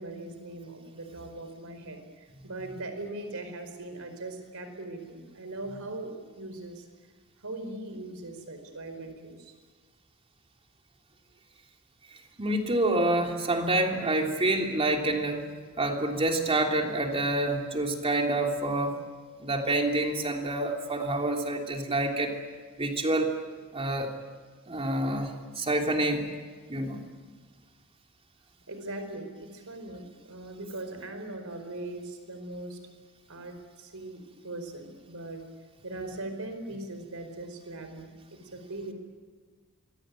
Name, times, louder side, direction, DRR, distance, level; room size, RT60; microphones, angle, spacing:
voice 1, 0.0-2.0 2.4-6.8 7.4-9.5 28.7-32.8 33.3-35.4 35.8-38.9, right 2 dB, 70° right, 7 dB, 4.7 m, -40 dB
voice 2, 12.4-15.5 15.8-19.0 19.4-22.3 22.8-23.3 23.7-24.1 24.7-26.2 26.7-27.0, right 2 dB, 25° right, 2 dB, 3.3 m, -27 dB
26.5 x 22.0 x 9.2 m, 1.5 s
head